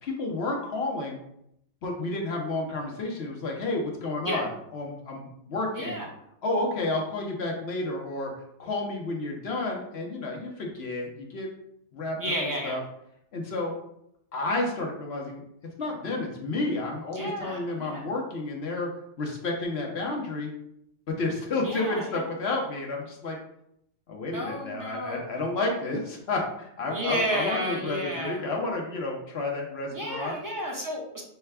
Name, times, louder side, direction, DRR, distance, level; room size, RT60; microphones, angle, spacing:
voice 1, 0.0-1.2 1.8-6.0 6.4-8.3 8.6-11.5 11.9-12.8 13.3-13.8 14.3-15.4 15.8-18.9 19.2-20.5 21.1-23.4 24.1-30.4, left 2 dB, 65° left, 0 dB, 1.0 m, -31 dB
voice 2, 5.7-6.1 12.2-12.8 17.1-18.0 21.6-22.2 24.3-25.2 26.9-28.5 29.9-31.2, equal, 20° right, -2 dB, 0.8 m, -32 dB
5.6 x 2.2 x 3.3 m, 0.76 s
omnidirectional pair, 1.2 m